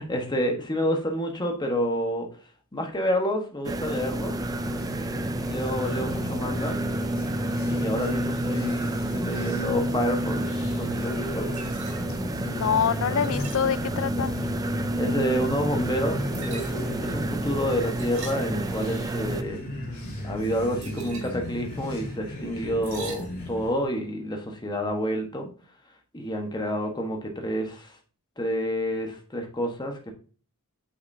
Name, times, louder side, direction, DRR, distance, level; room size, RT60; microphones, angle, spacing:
voice 1, 0.0-2.3 2.7-4.4 5.5-6.7 7.7-10.4 10.7-11.5 15.0-19.6 20.2-25.5 26.1-27.9 28.4-30.1, equal, 20° left, 1.2 m, -29 dB
sound 1, 3.6-19.4, right 1 dB, 15° right, 0.4 m, -30 dB
sound 2, 4.3-23.8, equal, 35° left, 3.7 m, -35 dB
sound 3, 11.2-23.9, right 3 dB, 70° right, 2.4 m, -46 dB
voice 2, 12.4-14.6, left 7 dB, 60° left, 0.4 m, -26 dB
8.5 x 5.9 x 2.7 m
head